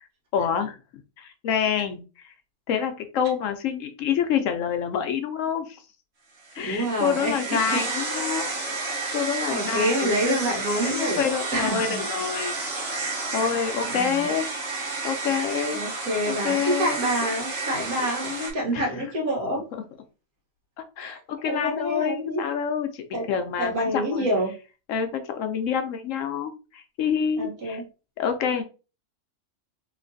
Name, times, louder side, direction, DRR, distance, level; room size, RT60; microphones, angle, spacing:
voice 1, 0.3-0.8 1.2-2.3 2.7-5.8 6.5-8.5 8.8-10.5 10.8-12.6 13.3-14.5 15.0-15.8 16.3-17.0 18.0-18.1 18.7-19.1 20.8-24.3 24.9-27.8 28.2-28.6, left 7 dB, 70° left, 8 dB, 0.9 m, -27 dB
sound 1, 6.5-18.5, right 3 dB, 50° right, 1.2 m, -31 dB
voice 2, 6.6-7.8 9.0-11.2 11.5-12.0 13.4-13.5 13.9-14.3 15.3-15.4 15.7-19.6 21.0-21.2 21.5-22.4 23.1-23.3 23.6-24.5 27.4-27.8, equal, 90° right, -1 dB, 1.6 m, -27 dB
3.2 x 2.9 x 2.5 m, 0.32 s
omnidirectional pair, 1.5 m